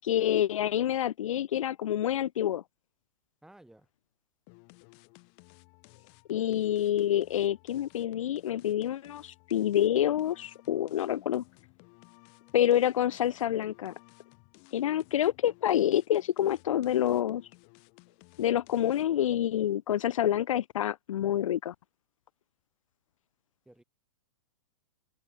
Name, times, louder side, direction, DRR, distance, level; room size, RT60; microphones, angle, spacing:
voice 1, 0.0-2.6 6.3-11.4 12.5-13.9 14.7-17.5 18.4-21.7, left 11 dB, 75° left, 0.5 m, -27 dB
voice 2, 3.4-3.9 12.3-12.5 23.6-23.8, right 1 dB, 5° right, 1.8 m, -56 dB
sound 1, 4.5-19.3, left 40 dB or more, 45° left, 5.3 m, -58 dB
hypercardioid pair, 125°, 17 cm